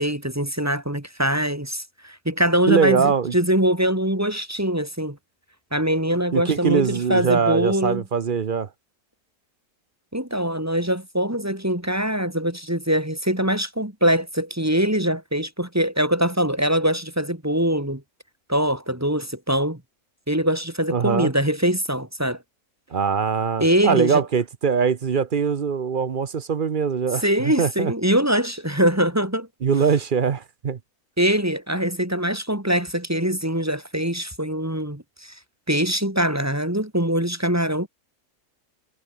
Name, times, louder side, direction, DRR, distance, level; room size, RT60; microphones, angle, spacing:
voice 1, 0.0-5.2 5.7-8.0 10.1-18.0 18.5-19.8 20.3-22.4 23.6-24.2 27.2-29.5 31.2-35.3 35.7-37.9, equal, 10° right, 2.5 m, -23 dB
voice 2, 2.7-3.3 6.3-8.7 20.9-21.3 22.9-27.9 29.6-30.8, right 6 dB, 40° right, 0.8 m, -22 dB
omnidirectional pair, 1.6 m